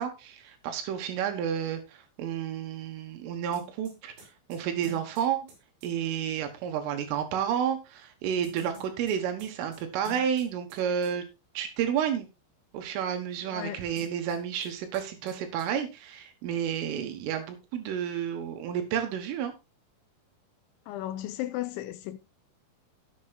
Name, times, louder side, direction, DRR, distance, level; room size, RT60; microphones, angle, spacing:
voice 1, 0.0-5.5 5.8-11.2 11.6-12.3 12.7-19.5, right 8 dB, 85° right, 4.0 m, -31 dB
sound 1, 3.5-5.9 8.4-10.8 11.0-11.1 14.0-14.7 14.9-15.0 15.3-15.7, left 2 dB, 65° right, 6.6 m, -49 dB
voice 2, 13.5-13.8 20.9-22.2, left 14 dB, 80° left, 2.9 m, -35 dB
19.0 x 7.0 x 2.5 m
omnidirectional pair, 5.6 m